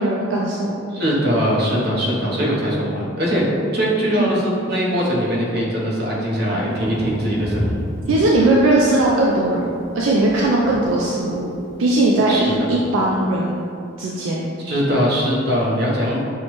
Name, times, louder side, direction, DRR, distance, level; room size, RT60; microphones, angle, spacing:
voice 1, 0.0-0.8 2.8-2.9 4.1-4.3 8.1-9.7 9.9-11.5 11.8-12.3 12.7-13.6 14.0-14.4, right 2 dB, 75° right, -4 dB, 0.4 m, -18 dB
voice 2, 0.9-3.4 3.7-7.8 12.3-12.7 14.6-16.2, equal, 50° right, -5 dB, 0.8 m, -21 dB
Thunder, 6.7-13.5, equal, 5° left, 0.5 m, -34 dB
6.3 x 2.1 x 3.0 m, 2.5 s
head